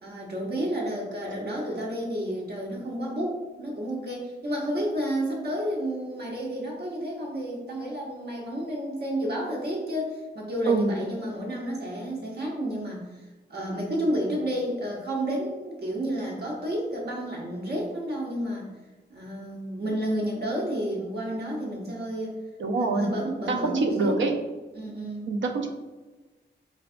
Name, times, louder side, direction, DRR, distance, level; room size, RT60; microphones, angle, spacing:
voice 1, 0.0-13.2 13.5-18.6 19.1-22.3 22.8-24.2 24.7-25.3, equal, 60° right, -2 dB, 1.1 m, -31 dB
voice 2, 10.7-11.0 22.6-23.1 23.5-24.3 25.3-25.7, right 3 dB, 90° right, 4 dB, 0.6 m, -25 dB
4.7 x 3.3 x 2.5 m, 1.2 s
wide cardioid pair, 155°, 19 cm